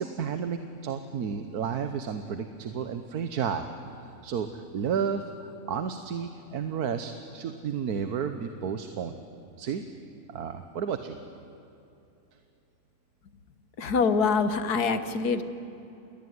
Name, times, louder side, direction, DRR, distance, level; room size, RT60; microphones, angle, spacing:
voice 1, 0.0-3.7 4.0-9.2 9.6-9.8 10.3-11.2, right 7 dB, 80° right, 8 dB, 1.6 m, -32 dB
voice 2, 13.8-15.4, left 5 dB, 90° left, 11 dB, 1.8 m, -25 dB
28.5 x 21.0 x 9.6 m, 2.9 s
omnidirectional pair, 1.6 m